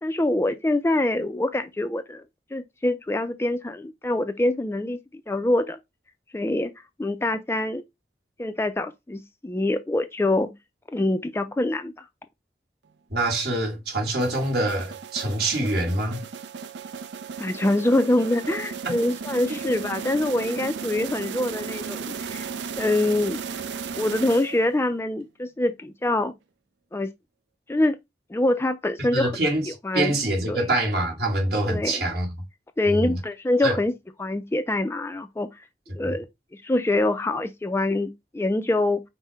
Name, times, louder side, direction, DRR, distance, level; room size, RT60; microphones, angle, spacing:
voice 1, 0.0-2.2 2.5-5.0 5.3-5.8 6.3-6.7 7.0-7.8 8.4-10.5 10.9-12.0 17.4-22.5 22.8-23.4 24.0-26.3 26.9-27.1 27.7-28.0 28.3-29.3 29.8-30.1 30.5-30.6 31.7-32.0 32.8-33.9 34.2-35.5 35.9-39.0, left 1 dB, 15° left, 0.3 m, -25 dB
voice 2, 13.1-16.3 18.9-19.0 29.0-32.3 32.9-33.2 33.6-33.8, right 1 dB, 60° right, 1.7 m, -25 dB
sound 1, 14.2-24.9, right 6 dB, 85° right, 0.5 m, -35 dB
5.5 x 2.1 x 4.6 m
head